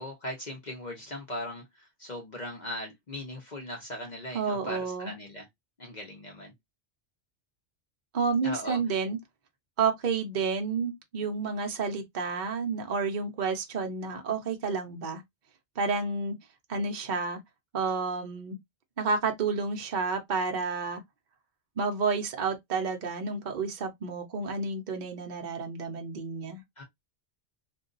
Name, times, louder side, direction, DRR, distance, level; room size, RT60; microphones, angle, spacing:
voice 1, 0.0-5.5 5.8-6.5 8.4-8.8 26.8-26.9, left 1 dB, 40° left, 0.9 m, -39 dB
voice 2, 4.3-5.2 8.1-9.2 9.8-15.2 15.8-16.4 16.7-17.4 17.7-18.6 19.0-21.0 21.8-26.6, right 4 dB, 50° right, 0.7 m, -30 dB
2.7 x 2.3 x 3.8 m
omnidirectional pair, 1.2 m